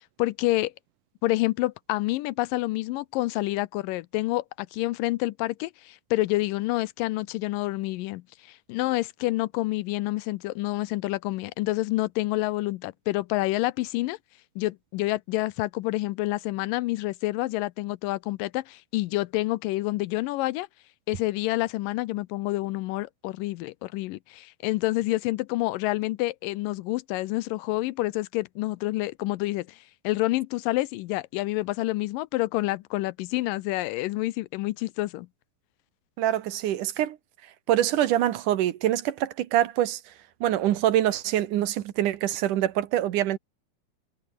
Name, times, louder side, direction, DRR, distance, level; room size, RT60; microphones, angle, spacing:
voice 1, 0.2-0.7 1.2-14.2 14.6-20.7 21.1-29.8 30.0-35.3, left 18 dB, 85° left, 2.3 m, -28 dB
voice 2, 36.2-37.2 37.7-40.0 40.4-43.4, right 12 dB, 70° right, 2.6 m, -25 dB
omnidirectional pair, 4.0 m